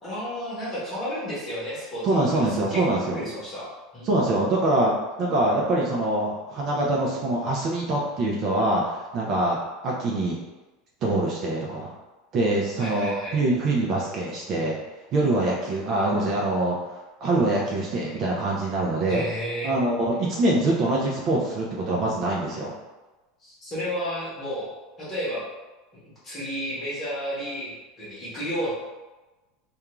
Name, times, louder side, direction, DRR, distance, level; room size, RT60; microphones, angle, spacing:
voice 1, 0.0-2.9 3.1-4.1 12.8-13.4 19.1-19.7 23.4-24.7 25.0-25.4 26.0-28.7, equal, 15° left, -8 dB, 0.9 m, -32 dB
voice 2, 2.0-3.2 4.0-4.9 5.2-10.4 11.0-11.9 12.3-14.8 15.1-19.2 19.6-22.7, right 2 dB, 30° right, -3 dB, 0.3 m, -24 dB
2.3 x 2.3 x 2.9 m, 1.1 s
supercardioid pair, 175°, 0 cm